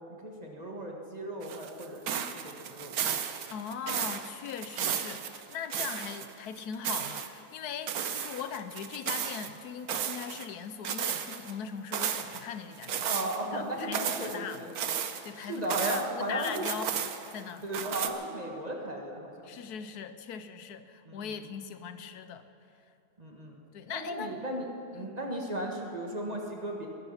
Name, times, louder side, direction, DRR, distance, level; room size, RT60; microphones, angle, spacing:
voice 1, 0.2-3.1 13.0-14.7 15.3-16.7 17.6-19.5 21.0-21.3 23.2-23.6 23.9-26.9, right 1 dB, 25° right, 0 dB, 1.6 m, -36 dB
sound 1, 1.4-6.3 6.6-7.3 7.9-9.5 9.9-10.5 10.8-11.5 11.9-12.4 12.8-13.4 13.8-16.1 16.4-17.4 17.7-18.1, right 8 dB, 70° right, 1.3 m, -34 dB
voice 2, 3.5-13.1 13.4-14.7 15.2-16.9 17.3-17.7 19.4-22.4 23.7-24.4 24.9-25.1, left 7 dB, 75° left, 11 dB, 1.2 m, -40 dB
21.5 x 11.5 x 5.7 m, 2.7 s
omnidirectional pair, 1.7 m